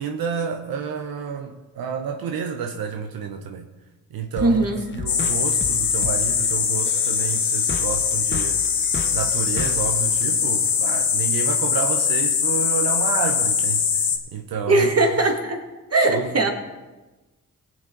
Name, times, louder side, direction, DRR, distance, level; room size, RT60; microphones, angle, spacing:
voice 1, 0.0-3.7 4.1-8.7 9.1-14.9 16.1-16.5, right 6 dB, 90° right, 4 dB, 0.9 m, -30 dB
sound 1, 4.4-11.0, left 4 dB, 35° left, 0.8 m, -36 dB
voice 2, 4.4-4.8 14.7-15.6 15.9-16.5, right 2 dB, 45° right, 3 dB, 2.0 m, -19 dB
sound 2, 5.1-14.2, left 6 dB, 70° left, 1.3 m, -22 dB
18.0 x 7.8 x 3.8 m, 1.1 s
cardioid pair, 60°, 35 cm